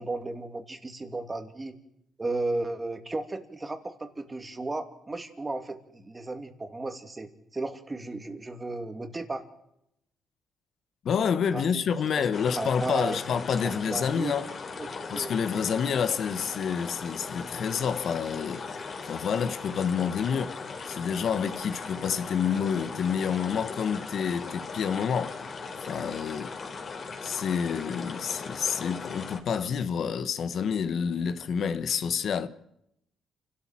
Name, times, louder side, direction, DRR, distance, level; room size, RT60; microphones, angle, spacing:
voice 1, 0.0-1.7 2.2-9.4 11.5-11.6 12.2-12.3 12.6-13.2 13.6-14.3 14.8-15.3, right 2 dB, 20° right, 2.7 m, -34 dB
voice 2, 11.0-14.5 15.1-26.6 27.2-32.5, left 7 dB, 60° left, 1.3 m, -28 dB
sound 1, 12.3-29.4, left 4 dB, 45° left, 3.8 m, -39 dB
28.5 x 13.0 x 7.6 m
cardioid pair, 90°, 0 cm